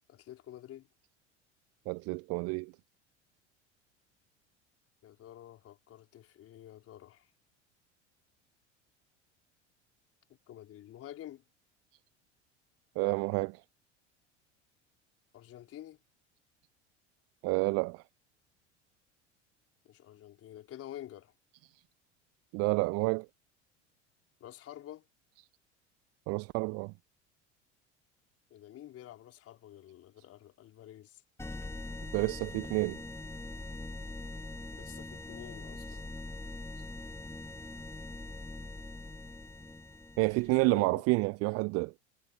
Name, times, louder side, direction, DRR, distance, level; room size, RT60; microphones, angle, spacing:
voice 1, 0.1-0.9 5.0-7.3 10.5-11.4 15.3-16.0 19.8-21.3 24.4-25.0 28.5-31.2 34.7-36.0 40.5-41.0, left 12 dB, 40° left, 4.7 m, -49 dB
voice 2, 1.9-2.7 13.0-13.6 17.4-18.0 22.5-23.3 26.3-26.9 32.1-33.0 35.9-36.0 40.2-41.9, right 29 dB, 45° right, 0.6 m, -29 dB
sound 1, 31.4-40.8, left 2 dB, 5° left, 2.7 m, -43 dB
figure-of-eight pair, 70°, 36 cm